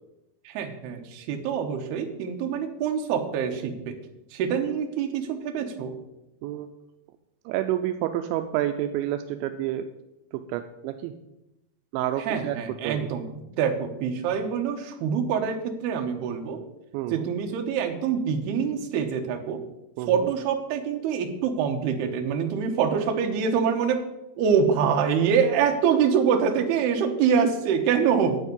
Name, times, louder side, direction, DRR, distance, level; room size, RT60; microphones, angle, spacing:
voice 1, 0.5-4.0 4.3-5.9 12.2-16.6 17.1-19.6 20.1-24.0 24.4-28.4, right 7 dB, 70° right, 4 dB, 2.9 m, -25 dB
voice 2, 7.5-9.9 10.5-11.1 11.9-12.6 12.8-13.1 16.9-17.3 20.0-20.3, right 12 dB, 85° right, 7 dB, 2.8 m, -29 dB
12.0 x 8.2 x 5.4 m, 0.92 s
omnidirectional pair, 5.3 m